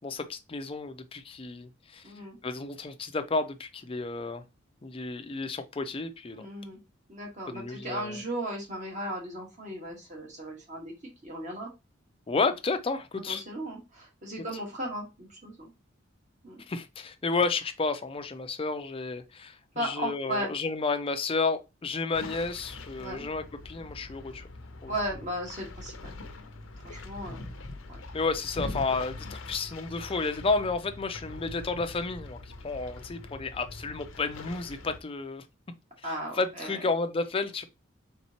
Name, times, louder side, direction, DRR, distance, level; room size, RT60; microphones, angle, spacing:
voice 1, 0.0-2.0 2.4-4.4 4.8-6.5 7.5-8.2 12.3-13.4 16.7-24.5 24.8-24.9 28.1-32.4 32.6-35.4 36.0-37.6, left 3 dB, 30° left, 0.5 m, -31 dB
voice 2, 2.0-2.4 6.3-6.8 7.1-10.9 11.2-11.7 13.3-15.7 16.4-16.6 19.7-20.5 23.0-23.3 24.9-25.9 26.8-27.5 27.9-28.0 36.0-36.7, right 1 dB, 40° right, 1.6 m, -36 dB
sound 1, 22.1-35.0, left 2 dB, 80° left, 0.7 m, -43 dB
4.2 x 3.6 x 2.9 m
head